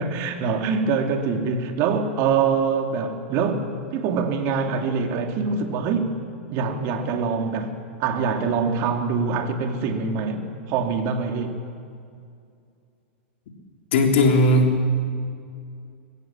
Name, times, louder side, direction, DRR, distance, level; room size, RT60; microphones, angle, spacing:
voice 1, 0.0-6.1 6.5-7.7 8.0-11.6, right 5 dB, 45° right, 2.7 m, -24 dB
voice 2, 13.9-14.9, left 1 dB, 70° left, 3.4 m, -17 dB
22.0 x 16.5 x 7.4 m
hypercardioid pair, 115°, 6 cm